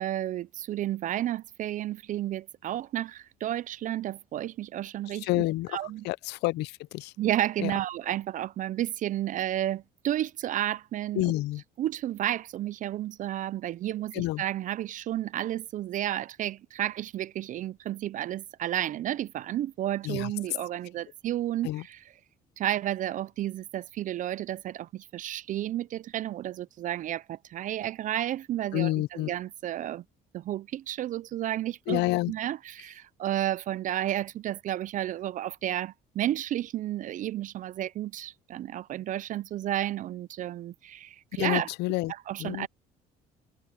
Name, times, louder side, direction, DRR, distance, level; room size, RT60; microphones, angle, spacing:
voice 1, 0.0-5.3 5.7-6.0 7.2-11.2 11.8-22.0 22.6-30.0 30.3-41.7 42.3-42.7, right 12 dB, 50° right, 0.4 m, -32 dB
voice 2, 5.1-7.1 7.6-7.7 11.1-11.6 14.1-14.4 20.0-20.3 21.6-21.8 28.7-29.3 31.9-32.3 41.3-42.1 42.4-42.7, left 19 dB, 80° left, 0.5 m, -29 dB
cardioid pair, 110°, 17 cm